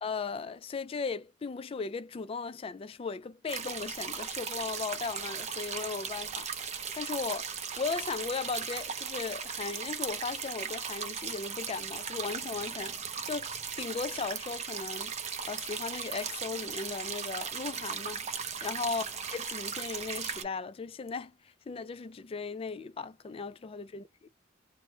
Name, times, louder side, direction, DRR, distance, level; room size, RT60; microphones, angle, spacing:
voice 1, 0.0-7.5 7.8-13.0 13.3-15.1 15.4-18.2 18.6-21.3 21.7-24.3, left 4 dB, 30° left, 0.3 m, -37 dB
sound 1, 3.5-20.4, right 6 dB, 35° right, 0.6 m, -37 dB
3.1 x 2.1 x 2.7 m
head